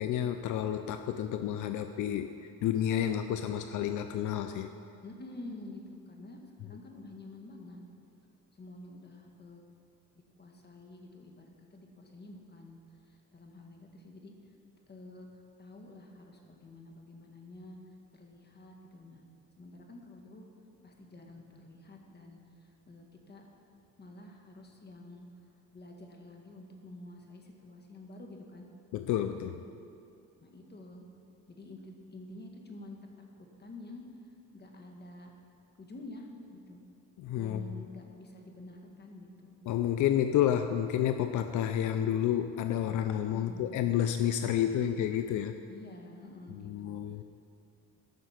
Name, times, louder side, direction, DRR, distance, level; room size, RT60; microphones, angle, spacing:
voice 1, 0.0-4.7 28.9-29.6 37.2-37.6 39.7-45.5 46.6-47.2, left 10 dB, 80° left, 8 dB, 0.5 m, -30 dB
voice 2, 5.0-7.8 8.5-9.6 10.4-14.3 14.9-17.8 18.1-19.2 19.6-20.5 20.8-23.4 24.0-25.3 25.7-28.6 29.2-29.5 30.4-31.0 31.5-33.0 33.4-34.0 34.5-35.3 35.8-36.8 37.4-39.6 43.3-43.8 45.7-47.0, left 2 dB, 35° left, 2 dB, 1.7 m, -49 dB
14.5 x 6.2 x 5.8 m, 2.5 s
cardioid pair, 90°, 30 cm